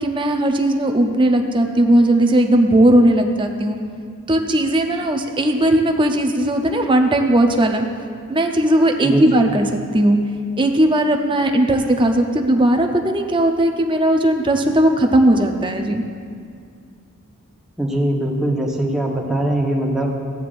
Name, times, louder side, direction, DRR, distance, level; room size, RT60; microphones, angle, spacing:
voice 1, 0.0-3.8 4.3-7.9 8.3-10.2 10.6-16.0, right 1 dB, 20° right, 4 dB, 0.6 m, -17 dB
voice 2, 17.8-20.1, right 1 dB, 5° right, -2 dB, 1.1 m, -21 dB
14.5 x 9.1 x 2.5 m, 2.2 s
head